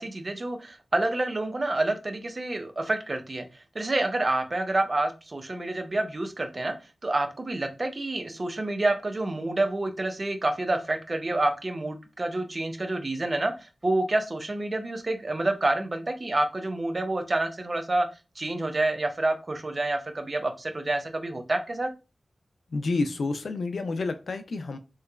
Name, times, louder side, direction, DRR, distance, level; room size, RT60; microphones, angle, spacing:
voice 1, 0.0-3.5 3.7-6.7 7.0-18.1 18.4-21.9, right 2 dB, 45° right, 0.7 m, -28 dB
voice 2, 22.7-24.8, left 3 dB, 80° left, 0.4 m, -29 dB
3.7 x 3.1 x 2.3 m
wide cardioid pair, 60°, 0 cm